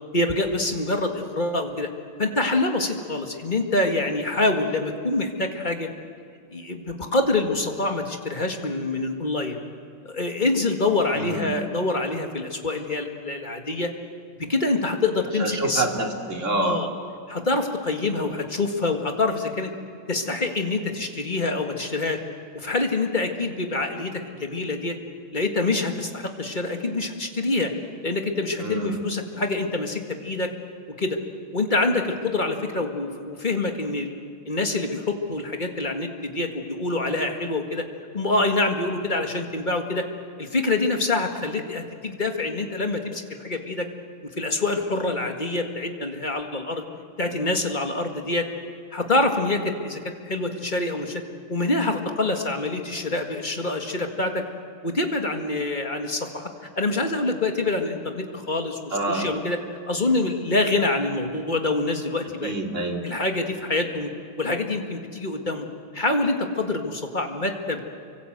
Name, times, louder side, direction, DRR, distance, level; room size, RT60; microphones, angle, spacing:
voice 1, 0.1-1.9 2.2-5.9 6.5-9.6 10.0-13.9 14.4-15.8 16.6-16.9 17.3-19.7 20.1-22.2 22.5-25.0 25.3-27.7 28.0-30.5 31.0-31.2 31.5-34.1 34.5-37.8 38.1-40.1 40.4-43.9 44.4-46.8 47.2-48.5 48.9-50.0 50.3-51.2 51.5-54.4 54.8-56.5 56.8-59.6 59.9-62.5 63.0-64.1 64.4-65.7 65.9-67.8, left 2 dB, 25° left, 3 dB, 1.8 m, -26 dB
voice 2, 11.1-11.5 15.4-16.8 28.6-29.0 58.9-59.4 62.4-63.1, right 2 dB, 35° right, 2 dB, 2.7 m, -27 dB
29.5 x 24.5 x 8.0 m, 2.2 s
omnidirectional pair, 2.4 m